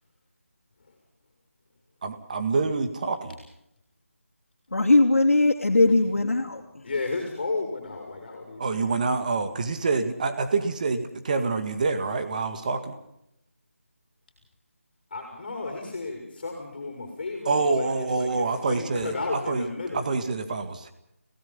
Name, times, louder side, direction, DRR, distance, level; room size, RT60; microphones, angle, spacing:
voice 1, 2.0-3.4 8.6-12.9 17.5-19.1 19.5-19.6 19.9-20.9, right 4 dB, 35° right, 8 dB, 2.0 m, -26 dB
voice 2, 4.7-6.8, left 2 dB, 70° left, -2 dB, 3.1 m, -20 dB
voice 3, 6.8-9.2 15.1-20.1, left 3 dB, 40° left, 2 dB, 5.6 m, -33 dB
29.5 x 18.0 x 5.5 m, 0.82 s
figure-of-eight pair, 165°, 8 cm